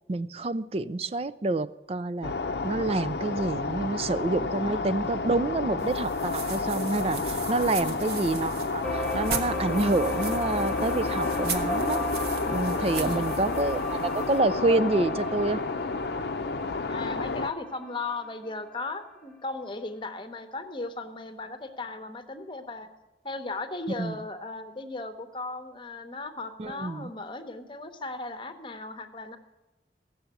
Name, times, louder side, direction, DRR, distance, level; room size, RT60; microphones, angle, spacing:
voice 1, 0.1-2.3 2.6-12.0 12.4-15.6 24.0-24.1 26.6-27.1, right 2 dB, 35° right, 15 dB, 0.4 m, -28 dB
sound 1, 2.2-17.5, left 3 dB, 70° left, 0.6 m, -31 dB
sound 2, 5.8-14.4, right 5 dB, 70° right, 1.3 m, -39 dB
voice 2, 7.7-8.1 12.9-13.3 16.9-22.9 23.2-29.4, left 3 dB, 25° left, 8 dB, 1.0 m, -37 dB
sound 3, 8.8-19.3 19.7-19.8 20.3-20.4, equal, 5° left, 1.3 m, -36 dB
16.0 x 7.0 x 9.0 m, 1.0 s
head